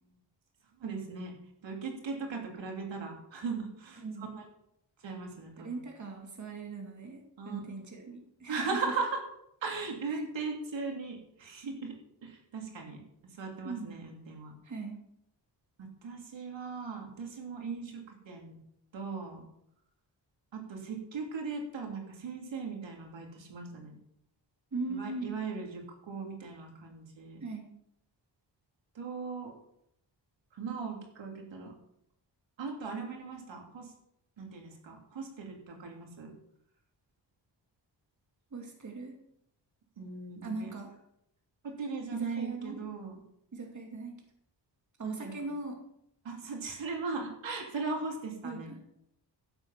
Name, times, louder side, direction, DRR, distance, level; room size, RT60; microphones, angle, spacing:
voice 1, 0.8-1.3 1.6-4.5 5.0-5.8 7.4-7.6 8.5-9.2 9.6-13.0 13.3-14.5 15.8-18.6 18.9-19.4 20.5-23.9 24.9-27.4 28.9-29.5 30.5-31.7 32.6-33.9 34.4-36.3 40.0-40.7 41.6-43.2 45.0-45.5 46.2-48.9, right 4 dB, 90° right, 1 dB, 3.2 m, -38 dB
voice 2, 4.0-4.4 5.6-8.7 10.1-10.2 13.6-14.0 14.6-15.1 24.7-25.3 27.4-27.7 38.5-39.1 40.4-40.9 42.1-42.8 43.5-44.2 45.0-45.8 48.4-48.8, right 3 dB, 40° right, 1 dB, 2.6 m, -40 dB
15.0 x 8.0 x 5.9 m, 0.76 s
wide cardioid pair, 130°, 44 cm